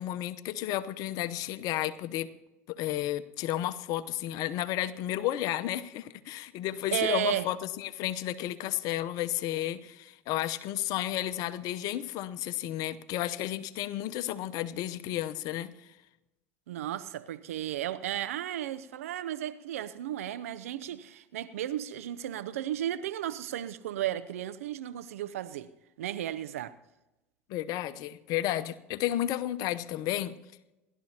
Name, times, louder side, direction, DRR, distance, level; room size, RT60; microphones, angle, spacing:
voice 1, 0.0-2.3 2.7-15.7 27.5-30.4, left 13 dB, 55° left, 0.8 m, -32 dB
voice 2, 6.9-7.5 16.7-25.7 26.0-26.7, right 11 dB, 75° right, 0.6 m, -34 dB
29.0 x 12.0 x 2.9 m
hypercardioid pair, 75°, 8 cm